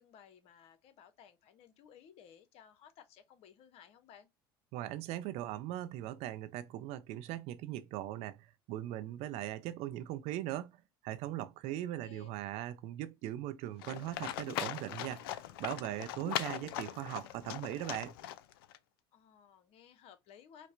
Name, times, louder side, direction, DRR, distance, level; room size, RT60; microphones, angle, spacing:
voice 1, 0.0-4.3 11.7-12.3 19.1-20.7, left 8 dB, 55° left, 0.7 m, -58 dB
voice 2, 4.7-10.8 11.0-18.1, right 13 dB, 60° right, 0.4 m, -40 dB
Livestock farm animals working animals, 13.8-18.8, left 12 dB, 80° left, 0.4 m, -40 dB
4.5 x 2.1 x 2.4 m
hypercardioid pair, 80°, 12 cm